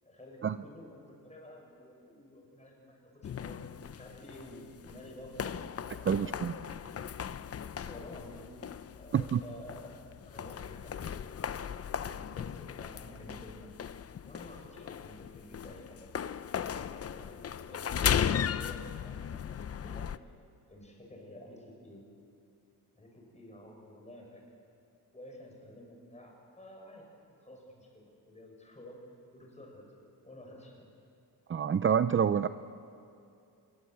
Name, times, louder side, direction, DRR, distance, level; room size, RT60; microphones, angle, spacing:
voice 1, 0.0-5.6 6.0-7.2 7.8-11.3 11.9-13.7 14.2-16.2 16.6-20.3 20.7-22.0 22.9-24.4 25.1-27.1 27.4-29.9 30.2-30.9, left 1 dB, 15° left, 0 dB, 7.1 m, -51 dB
sound 1, 3.2-20.2, left 8 dB, 35° left, 0.6 m, -37 dB
voice 2, 6.1-6.5 9.1-9.4 31.5-32.5, right 8 dB, 30° right, 12 dB, 0.5 m, -27 dB
26.0 x 22.5 x 8.2 m, 2.6 s
cardioid pair, 120°, 40 cm